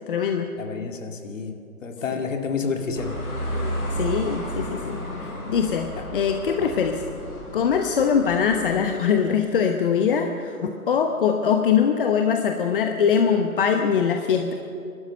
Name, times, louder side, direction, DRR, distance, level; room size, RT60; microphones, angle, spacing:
voice 1, 0.1-0.5 2.1-2.2 3.9-7.0 7.5-14.5, left 7 dB, 35° left, 5 dB, 1.1 m, -22 dB
voice 2, 0.6-3.2 3.5-3.8 6.0-6.1 6.6-6.7, left 5 dB, 55° left, 4 dB, 2.3 m, -30 dB
Busy road - Levenshulme Manchester, 2.9-8.9, equal, 15° left, 5.7 m, -32 dB
27.0 x 12.5 x 7.7 m, 2.6 s
figure-of-eight pair, 135°, 45 cm